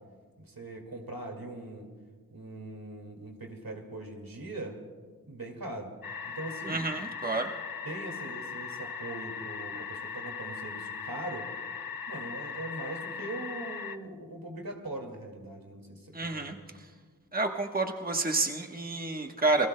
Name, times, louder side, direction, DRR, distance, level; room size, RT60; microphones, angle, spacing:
voice 1, 0.4-1.9 2.3-4.8 5.3-5.9 6.2-6.9 7.8-11.5 12.1-16.7, right 2 dB, 90° right, 2 dB, 2.2 m, -41 dB
sound 1, 6.0-14.0, left 6 dB, 80° left, 0.6 m, -39 dB
voice 2, 6.7-7.5 16.1-16.5 17.3-19.7, right 3 dB, 25° right, 3 dB, 1.1 m, -29 dB
28.5 x 20.0 x 2.2 m, 1.5 s
wide cardioid pair, 55°, 34 cm